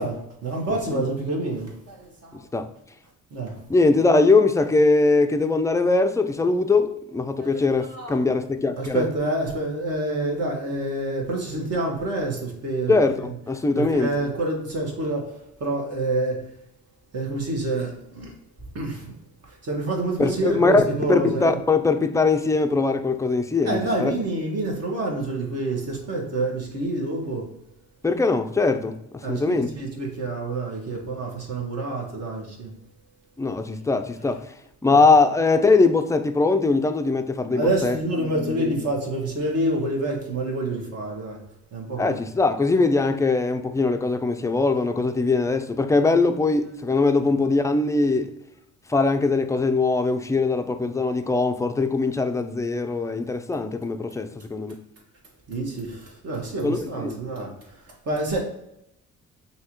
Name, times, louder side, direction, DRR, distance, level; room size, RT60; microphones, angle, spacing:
voice 1, 0.0-2.4 3.3-3.6 7.4-8.2 8.8-12.9 13.7-16.5 17.1-18.3 18.7-19.2 19.4-21.6 23.6-27.5 29.2-32.7 34.9-35.0 37.5-41.4 41.7-42.2 55.5-58.4, right 2 dB, 55° right, 1.5 m, -28 dB
voice 2, 2.3-2.7 3.7-9.0 12.9-14.1 20.2-20.8 21.1-24.1 28.0-29.7 33.4-34.5 34.8-38.0 38.6-38.7 42.0-48.3 48.9-54.8 56.6-57.2, left 3 dB, 10° left, 0.4 m, -21 dB
5.6 x 2.8 x 3.0 m
cardioid pair, 90°, 30 cm